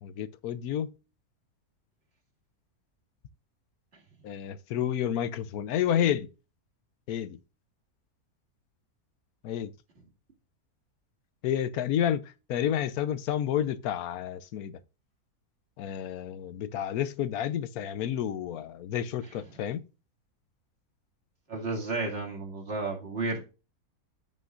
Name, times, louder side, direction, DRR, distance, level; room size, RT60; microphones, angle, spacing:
voice 1, 0.0-0.9 4.2-6.3 7.1-7.4 9.4-9.7 11.4-12.2 12.5-14.8 15.8-19.8, left 10 dB, 75° left, 1.2 m, -30 dB
voice 2, 21.5-23.4, right 3 dB, 45° right, 2.5 m, -32 dB
14.0 x 5.4 x 2.5 m
omnidirectional pair, 1.6 m